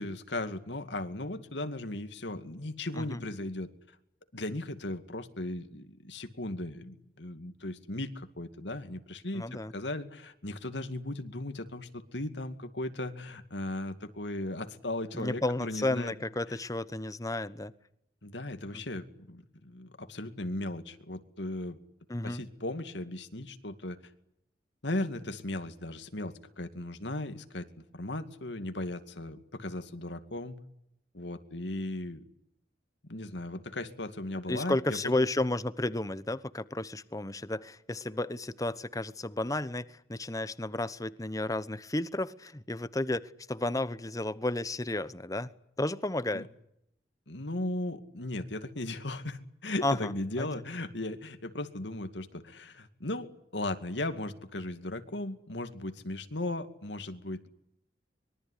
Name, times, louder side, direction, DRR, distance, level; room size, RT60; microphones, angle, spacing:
voice 1, 0.0-3.7 4.3-16.1 16.5-16.6 18.2-21.8 22.2-24.0 24.8-27.7 27.9-30.6 31.1-32.2 33.0-35.2 46.3-46.5 47.3-57.5, left 1 dB, 80° left, 2.4 m, -37 dB
voice 2, 9.3-9.7 15.1-17.7 18.7-18.8 22.1-22.4 34.5-43.2 43.5-45.5 45.8-46.5 49.8-50.1 50.4-50.5, left 2 dB, 20° left, 1.0 m, -32 dB
24.5 x 22.5 x 10.0 m
head